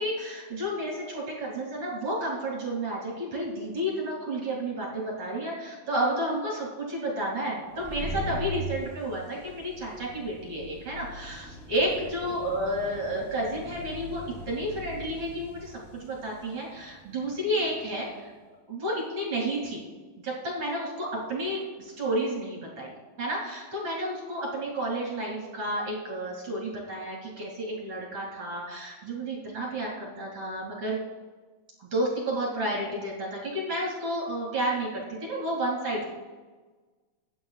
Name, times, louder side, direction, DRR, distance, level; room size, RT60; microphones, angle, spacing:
voice 1, 0.0-18.3 18.7-19.8 20.2-31.0 31.9-36.1, right 1 dB, 40° right, -3 dB, 2.3 m, -31 dB
sound 1, 7.6-18.0, equal, 70° left, 5.8 m, -41 dB
22.5 x 9.1 x 2.4 m, 1.3 s
omnidirectional pair, 5.7 m